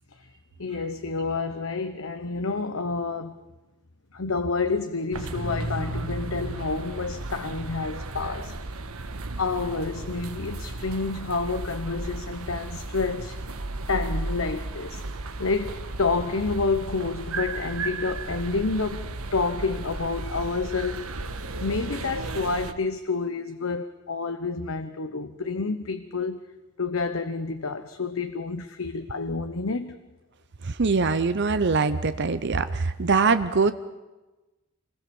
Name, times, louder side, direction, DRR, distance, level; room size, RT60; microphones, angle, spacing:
voice 1, 0.6-3.4 4.1-8.5 9.4-13.4 13.9-15.0 15.4-21.1 21.6-26.4 26.8-30.0, left 4 dB, 70° left, 9 dB, 1.0 m, -29 dB
sound 1, 5.1-22.7, right 2 dB, 90° right, 1.4 m, -34 dB
voice 2, 30.6-33.7, right 4 dB, 55° right, 11 dB, 0.7 m, -23 dB
26.0 x 20.5 x 7.1 m, 1.1 s
head